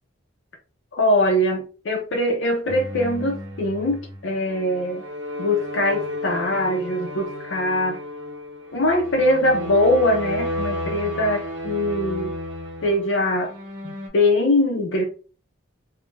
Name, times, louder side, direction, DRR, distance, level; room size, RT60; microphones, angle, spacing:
voice 1, 0.9-5.0 5.4-8.0 8.7-12.4 12.8-13.5 13.8-15.1, left 1 dB, 70° left, 0.5 m, -22 dB
sound 1, 2.7-14.1, left 1 dB, 70° right, 0.7 m, -33 dB
2.3 x 2.0 x 3.1 m
head